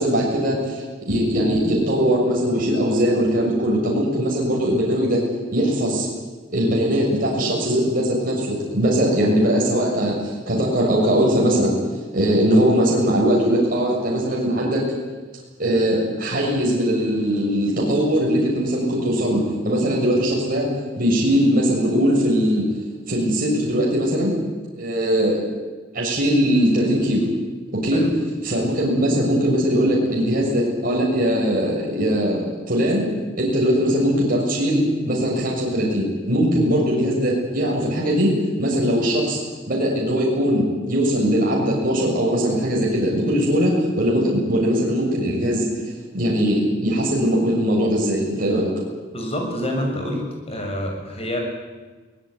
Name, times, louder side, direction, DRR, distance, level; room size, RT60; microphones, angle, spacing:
voice 1, 0.0-5.2 5.5-6.1 6.5-10.2 10.5-11.8 12.1-14.8 15.6-20.7 21.0-22.6 23.1-24.3 24.8-25.4 25.9-27.2 27.7-28.0 28.4-33.1 33.3-38.3 38.6-39.4 39.7-45.7 46.1-48.7, equal, 50° right, -3 dB, 7.0 m, -20 dB
voice 2, 49.1-51.4, equal, 30° left, 2 dB, 6.9 m, -27 dB
23.0 x 19.5 x 9.9 m, 1.3 s
head